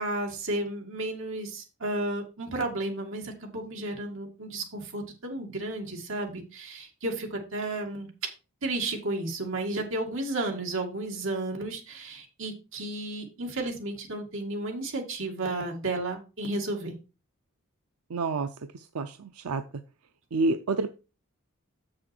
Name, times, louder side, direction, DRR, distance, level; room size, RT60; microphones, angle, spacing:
voice 1, 0.0-8.3 8.6-17.0, right 2 dB, 60° right, 1 dB, 2.2 m, -33 dB
voice 2, 18.1-18.5 18.9-19.6 20.3-20.9, right 3 dB, 90° right, 9 dB, 0.5 m, -28 dB
7.2 x 6.4 x 4.4 m, 0.31 s
head